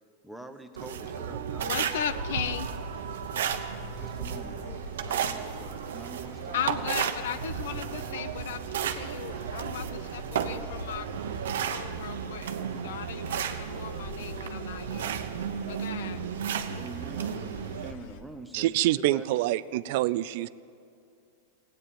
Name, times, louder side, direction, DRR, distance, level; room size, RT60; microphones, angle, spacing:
voice 1, 0.2-1.9 2.1-2.2 3.8-7.0 16.0-16.2 16.7-19.3 20.3-20.5, right 2 dB, ahead, 6 dB, 0.9 m, -46 dB
sound 1, 0.8-17.9, right 8 dB, 85° right, 0.9 m, -34 dB
voice 2, 1.6-2.7 6.5-8.6 8.9-11.1 11.6-12.5 12.8-15.1 15.7-16.2, left 9 dB, 75° left, 14 dB, 0.7 m, -36 dB
sound 2, 2.1-18.2, left 2 dB, 60° left, 1.0 m, -46 dB
voice 3, 18.5-20.5, right 15 dB, 60° right, 17 dB, 0.4 m, -26 dB
16.0 x 9.2 x 8.6 m, 2.4 s
supercardioid pair, 135°, 0 cm